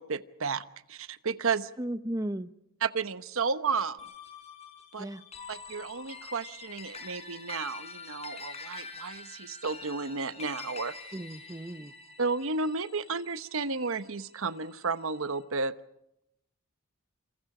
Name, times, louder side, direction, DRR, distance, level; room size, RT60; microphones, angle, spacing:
voice 1, 0.0-1.7 2.8-4.1 4.9-5.1 5.5-10.9 12.2-15.7, right 4 dB, 65° right, 12 dB, 1.0 m, -32 dB
voice 2, 1.8-2.5 5.0-5.2 11.1-11.9, right 1 dB, 15° right, 11 dB, 0.9 m, -35 dB
sound 1, 4.0-14.6, left 4 dB, 30° left, 4.6 m, -46 dB
28.5 x 27.0 x 5.0 m, 0.81 s
head